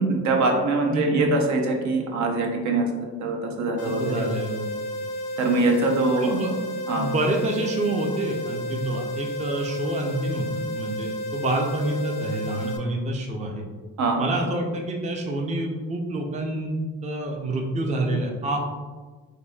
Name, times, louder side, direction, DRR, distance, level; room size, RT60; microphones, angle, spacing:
voice 1, 0.0-4.2 5.4-6.3 6.9-7.1 14.0-14.2, right 2 dB, 70° right, 1 dB, 0.6 m, -23 dB
sound 1, 3.8-12.8, equal, 85° left, 0.5 m, -32 dB
voice 2, 3.8-4.7 6.2-6.5 7.0-10.5 10.7-13.6 14.2-18.6, right 2 dB, 25° right, 1 dB, 0.5 m, -27 dB
4.0 x 2.6 x 2.3 m, 1.4 s
cardioid pair, 90°, 30 cm